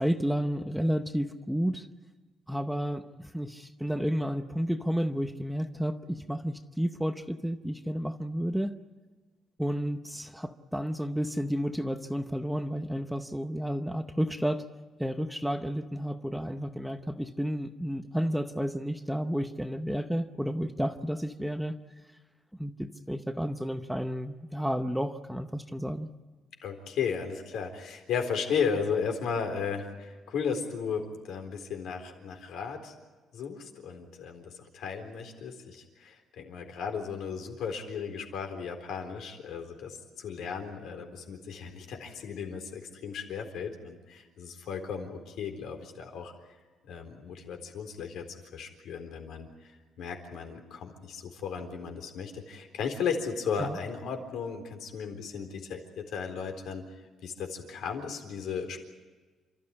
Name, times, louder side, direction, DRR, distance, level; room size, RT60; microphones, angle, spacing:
voice 1, 0.0-1.8 2.5-3.1 3.3-8.7 9.6-14.6 15.0-21.7 22.6-26.1 53.6-53.7, equal, ahead, 8 dB, 0.8 m, -31 dB
voice 2, 26.6-32.9 33.3-46.3 46.9-48.3 48.5-56.8 57.2-58.8, left 6 dB, 75° left, 4 dB, 4.0 m, -35 dB
29.0 x 13.5 x 9.6 m, 1.3 s
cardioid pair, 165°, 0 cm